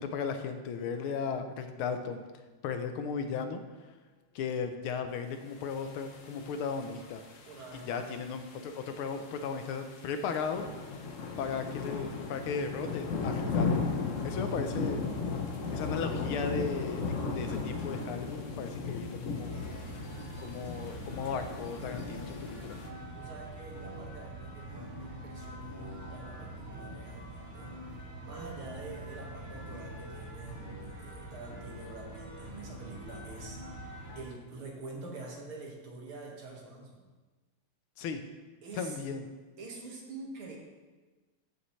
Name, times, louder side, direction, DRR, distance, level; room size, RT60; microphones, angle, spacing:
voice 1, 0.0-2.2 2.6-3.6 4.3-7.2 7.9-10.7 11.4-13.9 14.2-15.0 15.7-19.5 20.4-22.8 38.0-38.2 38.8-39.2, left 5 dB, 80° left, 7 dB, 1.6 m, -36 dB
sound 1, 5.7-22.9, left 4 dB, 55° left, 0.9 m, -36 dB
voice 2, 7.5-8.1 23.1-27.8 28.2-37.1 38.6-39.0 39.6-40.6, right 3 dB, 75° right, -1 dB, 2.5 m, -46 dB
sound 2, 19.5-34.2, right 1 dB, 30° right, 3.1 m, -44 dB
14.0 x 7.0 x 3.2 m, 1.3 s
omnidirectional pair, 2.4 m